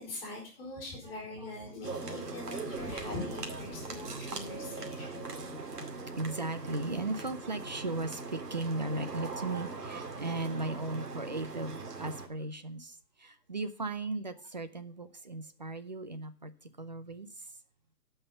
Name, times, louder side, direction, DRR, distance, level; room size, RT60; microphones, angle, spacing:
voice 1, 0.0-5.3 13.7-13.9, left 2 dB, 10° left, -6 dB, 3.9 m, -43 dB
sound 1, 1.8-12.3, right 3 dB, 70° right, 2.4 m, -40 dB
sound 2, 2.8-7.6, left 2 dB, 5° right, 2.1 m, -53 dB
voice 2, 4.0-4.3 4.6-5.3 5.7-17.5, right 2 dB, 30° right, 11 dB, 0.6 m, -37 dB
13.0 x 5.6 x 6.8 m, 0.37 s
hypercardioid pair, 165°, 48 cm